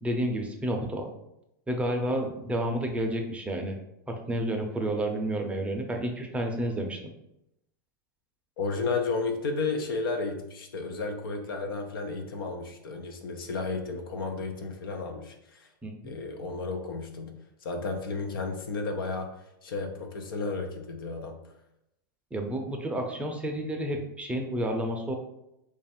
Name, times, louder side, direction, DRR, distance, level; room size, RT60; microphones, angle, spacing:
voice 1, 0.0-1.1 1.7-3.8 4.1-7.0 15.8-16.1 22.3-25.2, right 1 dB, 10° right, 2 dB, 0.5 m, -30 dB
voice 2, 8.6-15.7 16.0-17.3 17.6-19.3 19.6-21.4, left 3 dB, 85° left, 4 dB, 0.7 m, -33 dB
3.2 x 2.4 x 4.2 m, 0.85 s
hypercardioid pair, 120°, 11 cm